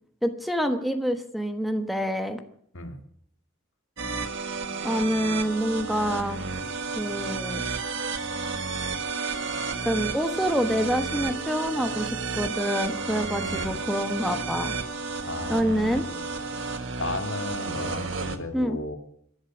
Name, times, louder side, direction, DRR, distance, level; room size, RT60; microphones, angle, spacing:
voice 1, 0.2-2.4 4.8-6.4 7.0-7.6 9.8-14.7 15.5-16.1 18.5-18.8, equal, ahead, 7 dB, 1.2 m, -27 dB
sound 1, 4.0-18.4, right 4 dB, 60° right, 1.7 m, -32 dB
voice 2, 13.4-13.8 15.3-16.2 16.5-19.0, left 2 dB, 70° left, 6 dB, 2.2 m, -35 dB
20.0 x 11.5 x 6.1 m, 0.68 s
head